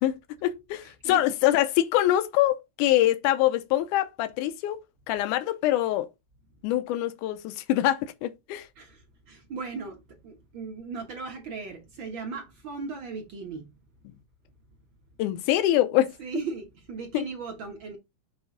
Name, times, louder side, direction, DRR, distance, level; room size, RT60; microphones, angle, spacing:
voice 1, 0.0-6.1 6.6-8.7 15.2-16.1 17.1-17.3, left 13 dB, 85° left, 2.2 m, -24 dB
voice 2, 8.8-13.7 16.2-18.0, right 4 dB, 55° right, 1.5 m, -37 dB
7.3 x 3.1 x 4.9 m
omnidirectional pair, 3.6 m